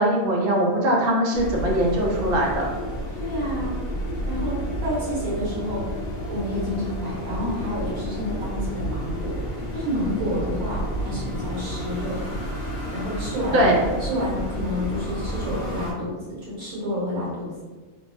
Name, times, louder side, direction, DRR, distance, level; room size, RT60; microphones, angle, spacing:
voice 1, 0.0-2.7 13.5-13.9, right 1 dB, 55° right, -2 dB, 0.7 m, -21 dB
sound 1, 1.3-15.9, equal, 50° left, 0.8 m, -31 dB
voice 2, 3.1-3.8 4.3-6.0 6.3-12.3 12.9-13.7 14.0-16.1 16.4-17.5, equal, 90° right, -6 dB, 1.5 m, -29 dB
3.1 x 2.1 x 2.6 m, 1.3 s
omnidirectional pair, 1.4 m